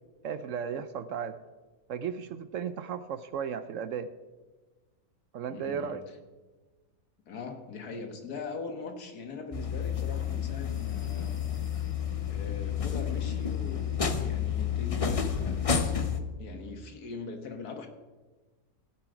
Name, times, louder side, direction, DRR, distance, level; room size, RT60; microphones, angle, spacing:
voice 1, 0.2-1.4 1.9-4.1 5.3-6.0, right 7 dB, 70° right, 13 dB, 0.8 m, -35 dB
voice 2, 5.5-6.0 7.3-11.4 12.3-15.6 16.4-17.9, left 4 dB, 80° left, 5 dB, 1.9 m, -41 dB
sound 1, 9.5-16.2, left 7 dB, 35° left, 0.6 m, -30 dB
16.5 x 7.8 x 5.0 m, 1.3 s
omnidirectional pair, 1.6 m